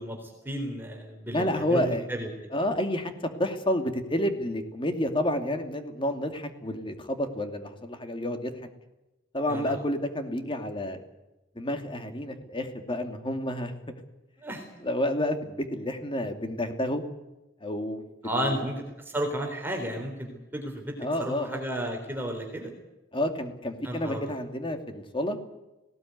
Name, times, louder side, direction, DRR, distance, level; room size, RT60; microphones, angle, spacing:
voice 1, 0.0-2.3 9.5-9.8 14.4-14.6 18.2-22.7 23.8-24.4, equal, 10° right, 2 dB, 3.6 m, -33 dB
voice 2, 1.3-2.1 2.5-3.1 3.4-8.5 9.3-11.0 11.6-13.7 14.8-17.0 17.6-18.0 18.3-18.6 21.0-21.6 23.1-25.4, left 1 dB, 25° left, 6 dB, 2.5 m, -29 dB
19.0 x 18.0 x 9.4 m, 0.99 s
head